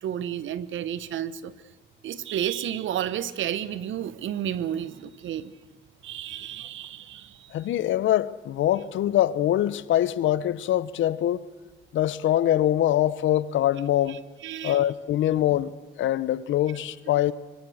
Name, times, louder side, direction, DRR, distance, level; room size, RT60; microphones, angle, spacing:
voice 1, 0.0-1.5 2.0-5.5 6.0-7.5 14.1-14.2 14.4-14.8, right 10 dB, 75° right, 1.2 m, -31 dB
voice 2, 7.5-11.4 11.9-14.2 14.6-17.3, left 12 dB, 75° left, 0.9 m, -24 dB
25.0 x 23.0 x 6.5 m
cardioid pair, 90°, 20 cm